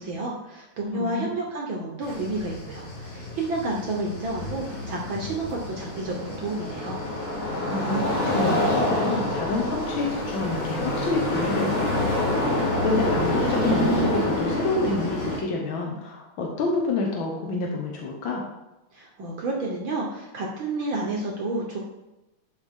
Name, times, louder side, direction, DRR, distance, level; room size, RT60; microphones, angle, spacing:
voice 1, 0.0-7.0 18.9-21.8, right 2 dB, 70° right, -1 dB, 1.1 m, -30 dB
voice 2, 0.9-1.3 7.7-18.4, left 3 dB, 65° left, -1 dB, 1.2 m, -28 dB
sound 1, 2.0-15.4, left 1 dB, 45° left, 2.6 m, -27 dB
11.0 x 5.0 x 3.6 m, 0.97 s
omnidirectional pair, 3.6 m